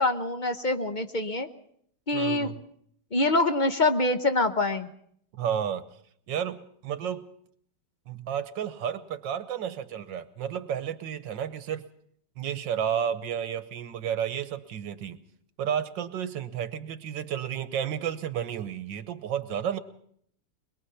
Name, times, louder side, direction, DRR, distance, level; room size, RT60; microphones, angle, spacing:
voice 1, 0.0-1.5 2.1-2.5 3.1-4.9, left 2 dB, 35° left, 8 dB, 0.8 m, -25 dB
voice 2, 2.1-2.6 5.4-5.8 6.3-7.3 8.1-11.8 12.4-15.2 15.6-19.8, right 9 dB, 85° right, 12 dB, 1.7 m, -32 dB
23.0 x 22.0 x 5.7 m, 0.67 s
omnidirectional pair, 1.9 m